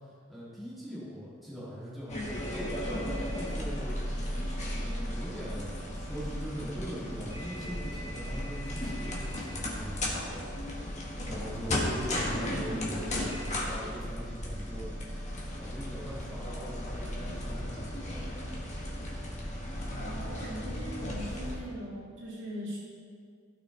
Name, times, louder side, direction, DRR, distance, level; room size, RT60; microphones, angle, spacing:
voice 1, 0.3-4.0 4.7-10.4 11.2-14.9 15.4-18.3, equal, ahead, -11 dB, 2.7 m, -41 dB
sound 1, 2.1-21.6, left 1 dB, 40° left, 1.6 m, -35 dB
voice 2, 20.0-22.8, equal, 75° right, -9 dB, 2.0 m, -40 dB
16.0 x 6.1 x 3.3 m, 2.1 s
head